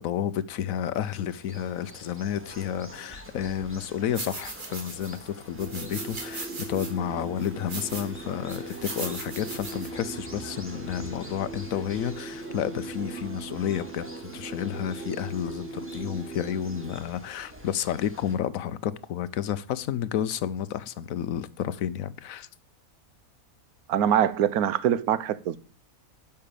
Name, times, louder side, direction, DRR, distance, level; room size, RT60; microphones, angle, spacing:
voice 1, 0.0-14.1 14.3-22.5, left 10 dB, 70° left, 1.1 m, -31 dB
sound 1, 0.7-18.4, equal, 10° right, 2.0 m, -46 dB
sound 2, 4.1-5.2 5.6-6.9 7.4-8.1 8.5-9.9, right 3 dB, 35° right, 1.9 m, -38 dB
sound 3, 5.6-17.0, right 4 dB, 55° right, 0.8 m, -40 dB
voice 2, 23.9-25.6, right 10 dB, 85° right, 1.2 m, -23 dB
11.0 x 5.8 x 6.8 m
omnidirectional pair, 1.5 m